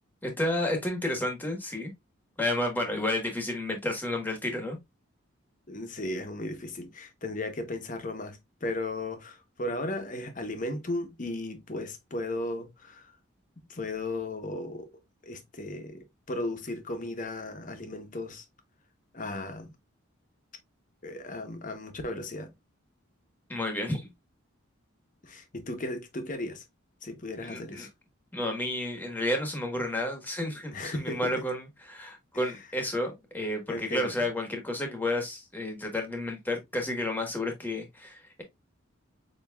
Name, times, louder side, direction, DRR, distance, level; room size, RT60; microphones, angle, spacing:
voice 1, 0.2-1.9 2.4-4.8 23.5-24.1 27.4-27.9 28.3-38.4, left 1 dB, 10° left, 1.2 m, -31 dB
voice 2, 5.7-13.1 13.7-14.9 15.2-18.4 19.1-19.7 21.0-22.5 25.2-26.6 27.0-27.9 30.7-31.4 32.3-32.5 33.7-34.1, left 2 dB, 40° left, 0.9 m, -35 dB
7.1 x 3.0 x 2.3 m
head